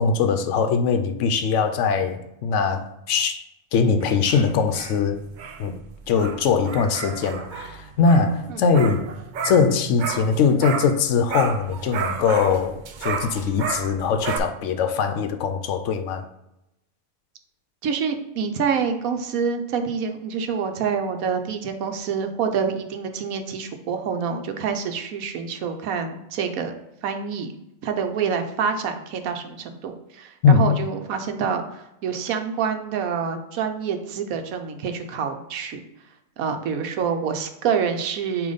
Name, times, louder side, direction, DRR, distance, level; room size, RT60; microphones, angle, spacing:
voice 1, 0.0-3.4 3.7-5.2 5.6-5.8 6.1-9.0 9.4-16.2 30.4-30.8, left 5 dB, 70° left, 0.8 m, -21 dB
sound 1, 4.0-11.0 11.3-14.4, right 6 dB, 65° right, 0.4 m, -32 dB
voice 2, 17.8-26.7 27.0-27.5 27.8-35.8 36.4-38.5, right 6 dB, 90° right, 1.2 m, -27 dB
8.4 x 3.0 x 4.0 m
omnidirectional pair, 1.4 m